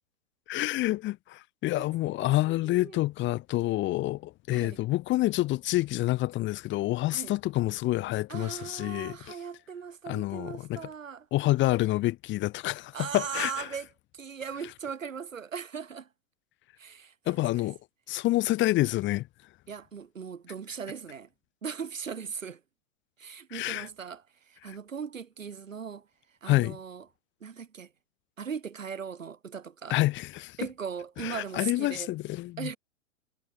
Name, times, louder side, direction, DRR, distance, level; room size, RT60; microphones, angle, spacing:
voice 1, 0.5-9.1 10.1-10.8 11.3-13.7 17.3-17.8 18.1-19.3 23.5-23.9 26.5-26.8 29.9-30.6 31.2-32.7, left 17 dB, 30° left, 2.0 m, -28 dB
voice 2, 2.2-3.0 4.5-4.8 7.1-7.3 8.3-11.3 12.9-13.9 14.1-16.1 16.8-17.7 19.7-21.3 21.6-22.6 23.2-26.1 26.4-27.0 27.4-27.9 28.4-30.0 30.6-32.1 32.6-32.8, right 6 dB, 85° right, 4.9 m, -39 dB
hypercardioid pair, 120°, 38 cm